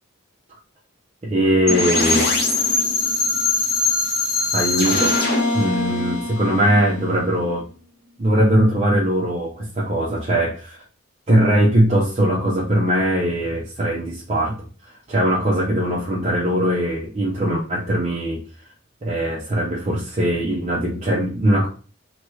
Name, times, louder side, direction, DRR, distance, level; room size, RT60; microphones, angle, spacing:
voice 1, 1.2-2.3 4.5-5.1 5.5-7.6 8.2-10.8 11.3-14.7 15.1-18.4 19.0-21.7, equal, 30° right, -4 dB, 0.5 m, -20 dB
sound 1, 1.7-7.5, left 3 dB, 50° left, 0.9 m, -21 dB
2.9 x 2.3 x 3.0 m, 0.37 s
head